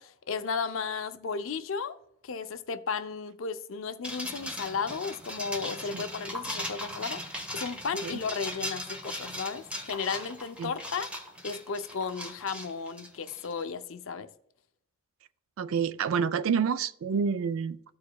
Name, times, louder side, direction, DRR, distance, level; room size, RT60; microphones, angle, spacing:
voice 1, 0.0-2.0 2.2-11.1 11.4-14.3, left 5 dB, 65° left, 0.5 m, -34 dB
sound 1, 4.0-13.6, left 1 dB, 5° right, 1.0 m, -39 dB
voice 2, 15.6-18.0, right 6 dB, 70° right, 0.4 m, -28 dB
14.0 x 4.7 x 2.2 m
head